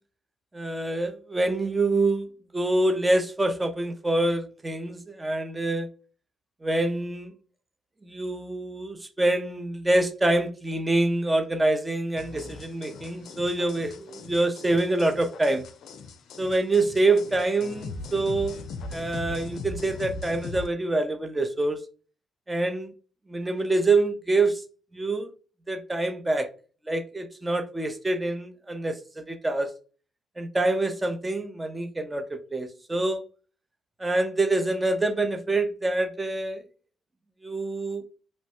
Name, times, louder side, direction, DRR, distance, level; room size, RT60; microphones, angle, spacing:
voice 1, 0.5-2.3 2.5-5.9 6.6-7.3 8.0-15.6 16.4-18.6 18.9-21.8 22.5-22.9 23.3-24.6 24.9-25.3 25.7-26.5 26.9-29.7 30.4-33.3 34.0-36.6 37.4-38.0, right 2 dB, 15° right, 0.6 m, -26 dB
sound 1, 12.2-20.7, left 3 dB, 75° left, 0.4 m, -40 dB
3.1 x 2.2 x 2.9 m
cardioid pair, 90°, 0 cm